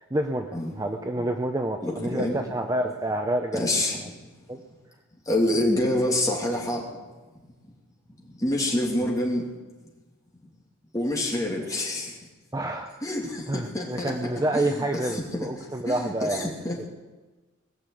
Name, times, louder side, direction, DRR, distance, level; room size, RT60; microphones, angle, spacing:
voice 1, 0.0-3.6 4.5-4.6 12.5-12.9 13.5-16.9, right 1 dB, 15° right, 4 dB, 0.6 m, -28 dB
voice 2, 1.8-2.4 3.5-4.3 5.3-7.0 8.2-9.5 10.9-12.2 13.0-14.2 14.5-16.9, left 1 dB, 15° left, -2 dB, 2.8 m, -27 dB
20.5 x 6.9 x 8.4 m, 1.3 s
head